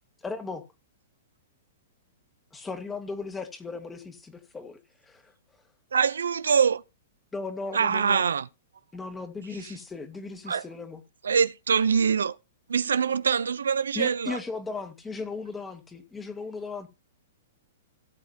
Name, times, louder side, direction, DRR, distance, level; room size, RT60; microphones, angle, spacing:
voice 1, 0.2-0.7 2.5-5.3 7.3-8.2 8.9-11.0 13.9-16.9, left 4 dB, 10° left, 1.7 m, -37 dB
voice 2, 5.9-6.8 7.7-8.5 9.5-9.8 10.5-10.7 11.2-12.4 12.7-14.4, right 6 dB, 85° right, 0.5 m, -24 dB
18.0 x 6.9 x 2.7 m
hypercardioid pair, 125°, 0 cm